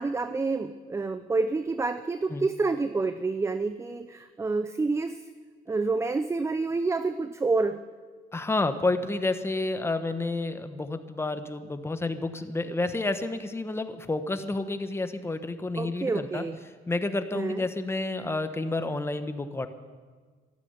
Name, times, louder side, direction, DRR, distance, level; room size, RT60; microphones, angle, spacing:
voice 1, 0.0-5.2 5.7-7.8 15.8-16.6 17.3-17.6, right 3 dB, 15° right, 11 dB, 0.6 m, -28 dB
voice 2, 8.3-16.4 16.9-19.7, left 2 dB, 15° left, 9 dB, 1.1 m, -30 dB
13.5 x 12.5 x 8.1 m, 1.5 s
cardioid pair, 110°, 17 cm